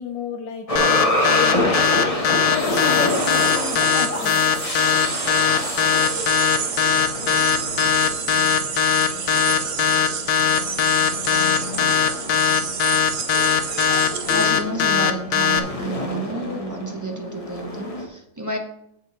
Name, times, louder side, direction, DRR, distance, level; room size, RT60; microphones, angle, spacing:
voice 1, 0.0-2.0 2.5-4.4 5.3-5.6, left 6 dB, 85° left, 5 dB, 1.5 m, -31 dB
sound 1, 0.7-18.1, left 1 dB, 25° left, 1.2 m, -28 dB
sound 2, 0.8-15.6, left 7 dB, 65° left, 1.1 m, -19 dB
sound 3, 3.1-14.6, right 6 dB, 55° right, 0.6 m, -30 dB
voice 2, 14.3-18.6, right 1 dB, 15° right, 1 dB, 0.9 m, -30 dB
15.0 x 5.3 x 3.1 m, 0.76 s
omnidirectional pair, 1.9 m